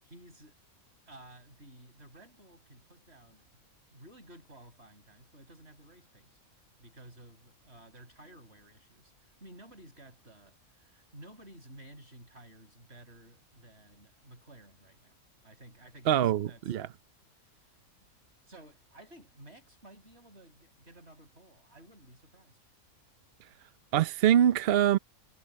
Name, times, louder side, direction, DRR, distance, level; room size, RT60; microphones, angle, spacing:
voice 1, 0.0-0.6 1.1-3.5 3.9-6.4 6.8-15.2 15.4-16.8 18.5-22.6, right 1 dB, 45° right, 7.4 m, -54 dB
voice 2, 16.1-16.9 23.9-25.0, right 10 dB, 60° right, 0.6 m, -24 dB
omnidirectional pair, 1.5 m